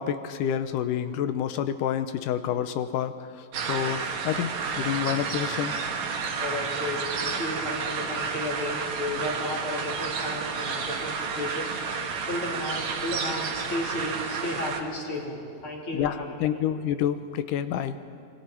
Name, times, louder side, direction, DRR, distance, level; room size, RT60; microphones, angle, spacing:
voice 1, 0.0-5.7 15.9-18.0, left 9 dB, 85° left, 11 dB, 2.5 m, -28 dB
sound 1, 3.5-14.8, right 5 dB, 65° right, 2.6 m, -31 dB
voice 2, 6.4-11.7 12.3-16.7, left 1 dB, 40° left, -2 dB, 3.6 m, -33 dB
28.0 x 22.0 x 4.5 m, 2.3 s
omnidirectional pair, 3.7 m